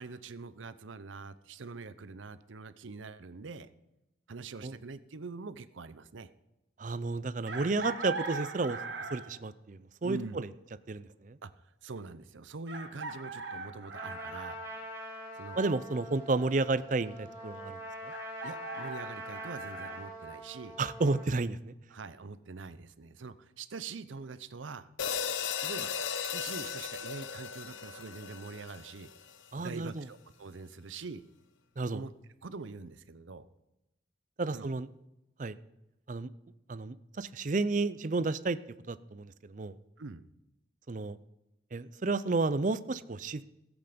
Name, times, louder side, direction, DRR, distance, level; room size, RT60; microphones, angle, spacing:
voice 1, 0.0-3.7 4.3-6.3 10.0-10.4 11.4-11.5 11.8-14.6 15.3-15.6 18.4-20.8 21.9-24.9 25.6-29.1 29.6-31.2 31.9-32.1 32.4-33.5 34.5-34.7 40.0-40.2, right 4 dB, 90° right, 14 dB, 0.7 m, -44 dB
voice 2, 6.8-8.8 9.1-10.5 10.9-11.4 15.6-17.8 18.0-18.1 20.8-21.7 29.5-30.1 31.8-32.0 34.4-34.9 35.4-35.6 36.1-36.3 36.7-38.6 38.9-39.7 40.9-41.2 41.7-43.4, right 3 dB, 40° right, 15 dB, 0.5 m, -32 dB
Chicken rooster, 7.5-9.4 11.1-11.2 12.7-14.6 18.1-19.9, right 3 dB, 70° right, 1.4 m, -40 dB
Trumpet, 13.9-21.3, equal, 15° right, 3.2 m, -44 dB
sound 1, 25.0-29.4, left 7 dB, 85° left, 0.7 m, -36 dB
16.0 x 8.1 x 5.2 m, 0.93 s
head